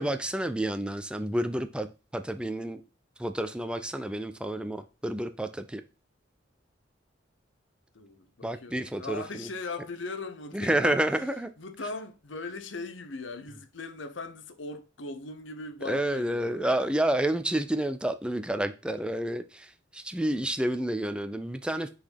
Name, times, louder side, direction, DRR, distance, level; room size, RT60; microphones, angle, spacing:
voice 1, 0.0-1.9 2.1-2.8 3.2-5.8 8.4-9.5 10.5-11.5 15.9-21.9, right 1 dB, 5° right, 0.4 m, -29 dB
voice 2, 7.9-11.0 11.6-16.9, left 3 dB, 75° left, 0.9 m, -39 dB
5.9 x 4.1 x 5.8 m
head